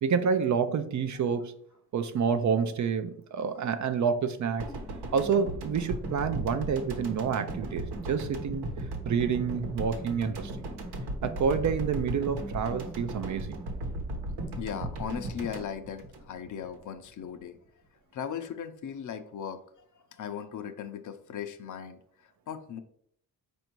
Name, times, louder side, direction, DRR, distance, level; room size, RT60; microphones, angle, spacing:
voice 1, 0.0-1.5 1.9-4.7 5.1-8.7 9.1-10.5 11.2-13.6, right 6 dB, 45° right, 9 dB, 0.5 m, -28 dB
sound 1, 4.6-16.8 17.1-17.2, right 1 dB, 75° right, 1.1 m, -36 dB
voice 2, 14.6-17.6 18.1-19.6 20.1-22.8, left 8 dB, 50° left, 8 dB, 0.6 m, -38 dB
4.5 x 2.6 x 4.5 m, 0.66 s
cardioid pair, 95°, 40 cm